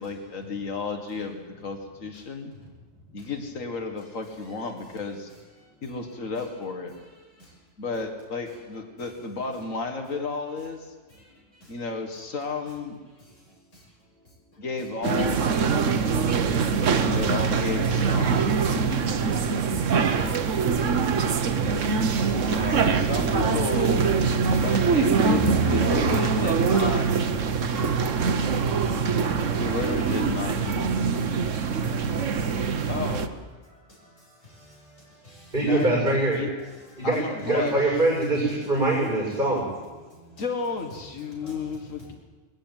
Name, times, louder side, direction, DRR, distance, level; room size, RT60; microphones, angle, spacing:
voice 1, 0.0-2.5 3.1-5.3 5.8-6.9 7.8-10.9 11.7-13.0 14.6-15.4 17.1-18.5 22.0-24.1 24.6-27.1 29.5-30.6 32.9-33.4 35.6-36.5 37.0-37.8 40.3-42.1, left 4 dB, 85° left, 2.2 m, -32 dB
voice 2, 2.2-3.3 4.2-5.0 5.6-6.5 6.9-7.7 8.5-8.6 9.0-9.1 11.1-11.8 13.1-14.6 15.8-17.6 18.4-19.7 21.5-23.0 26.7-29.8 30.4-33.3 33.6-36.0 36.6-37.1 37.4-37.8 38.6-38.7 39.3-39.6 40.0-40.5 40.9-42.1, equal, 70° left, 6.9 m, -53 dB
sound 1, 15.0-33.3, right 5 dB, 70° right, 1.4 m, -24 dB
sound 2, 16.4-16.6 16.8-17.1 17.3-17.5 17.8-18.0 18.3-18.5 18.7-19.0 19.2-19.4 19.7-19.9 20.2-20.4 20.6-20.9 21.1-21.3 21.6-21.8 22.1-22.3 22.5-22.8 23.0-23.7 24.0-24.2 24.5-24.7 24.9-25.1 25.4-25.6 25.9-26.1 26.4-26.6 26.8-27.1 27.3-27.5 27.8-28.0 28.3-28.5 28.7-29.0 29.2-29.4 29.7-29.9 30.2-30.4 30.6-30.9, right 2 dB, 5° left, 5.9 m, -38 dB
sound 3, 22.0-24.0 24.5-27.1 27.4-27.9, right 4 dB, 55° right, 1.3 m, -33 dB
voice 3, 35.5-36.4 37.0-39.6, right 2 dB, 40° right, 7.1 m, -23 dB
21.0 x 14.0 x 9.1 m
omnidirectional pair, 1.3 m